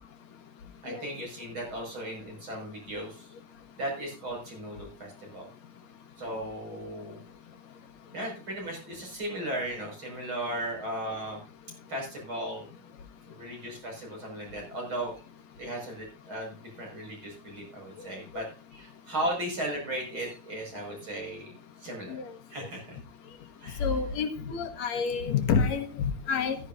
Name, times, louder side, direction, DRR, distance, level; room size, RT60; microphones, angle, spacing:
voice 1, 0.8-3.3 3.8-5.5 6.2-7.2 8.1-11.4 11.9-12.7 13.3-15.2 15.6-18.5 18.7-21.5 21.8-22.2 22.5-23.0 23.6-23.8, right 1 dB, 40° right, 0 dB, 6.4 m, -36 dB
voice 2, 23.8-26.6, left 6 dB, 65° left, 6 dB, 2.7 m, -28 dB
15.0 x 13.0 x 2.6 m, 0.35 s
omnidirectional pair, 3.4 m